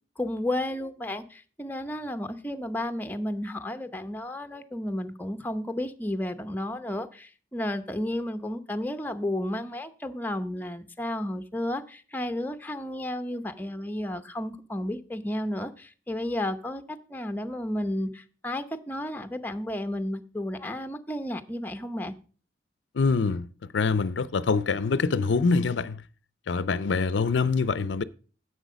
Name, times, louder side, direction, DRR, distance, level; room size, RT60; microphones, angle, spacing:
voice 1, 0.2-22.1, left 1 dB, 10° left, 0.7 m, -32 dB
voice 2, 23.0-23.5 23.7-26.0 26.5-28.0, left 4 dB, 85° left, 0.5 m, -25 dB
10.5 x 7.6 x 5.1 m
head